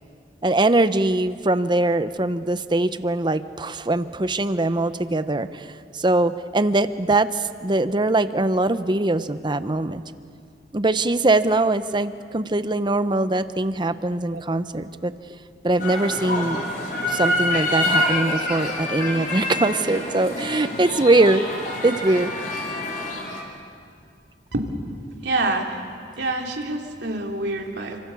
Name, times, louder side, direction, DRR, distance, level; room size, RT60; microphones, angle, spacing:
voice 1, 0.4-5.7 5.9-10.0 10.7-15.1 15.6-16.6 17.0-21.4 21.8-22.3, right 2 dB, 25° right, 12 dB, 0.8 m, -22 dB
sound 1, 15.8-23.4, left 1 dB, 50° left, 4.7 m, -26 dB
voice 2, 25.2-25.8 26.2-28.0, right 2 dB, 70° right, 2 dB, 3.1 m, -26 dB
29.0 x 26.0 x 7.0 m, 2.3 s
head